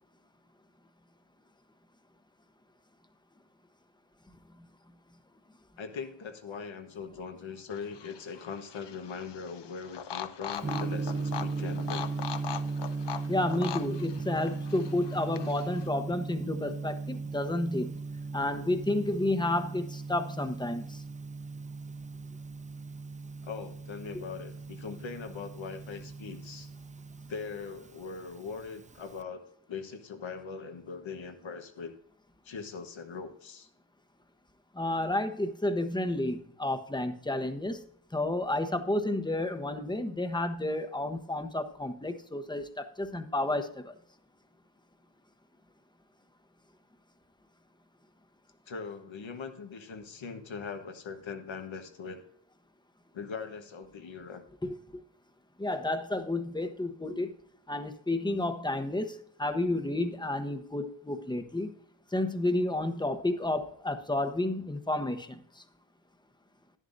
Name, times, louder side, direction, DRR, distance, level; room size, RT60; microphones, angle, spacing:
voice 1, 5.8-12.1 23.4-26.7 27.3-29.4 29.7-31.9 32.4-33.7 48.7-52.2 53.1-54.4, left 5 dB, 85° left, 7 dB, 1.3 m, -41 dB
sound 1, 7.7-15.9, left 8 dB, 65° left, 0.7 m, -41 dB
Gong, 10.6-29.2, right 4 dB, 20° right, 0.3 m, -37 dB
voice 2, 13.3-18.0 18.3-21.0 34.7-37.8 38.1-43.9 54.6-54.8 55.6-57.3 57.7-61.7 62.1-65.6, left 1 dB, 10° left, 8 dB, 0.9 m, -31 dB
11.0 x 11.0 x 2.6 m, 0.64 s
wide cardioid pair, 80°, 45 cm